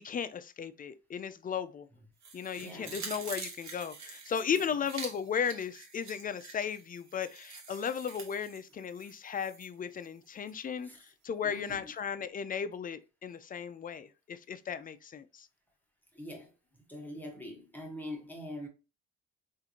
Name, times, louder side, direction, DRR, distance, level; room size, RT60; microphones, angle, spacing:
voice 1, 0.0-1.9 2.3-15.5, left 7 dB, 30° left, 0.3 m, -36 dB
sound 1, 2.2-9.7 10.0-10.1, right 5 dB, 65° right, 1.1 m, -46 dB
voice 2, 2.5-3.2 4.5-4.9 9.0-9.1 10.8-11.1 11.4-11.9 16.1-18.7, left 1 dB, 5° left, 1.0 m, -45 dB
3.6 x 2.5 x 2.8 m
cardioid pair, 90°, 30 cm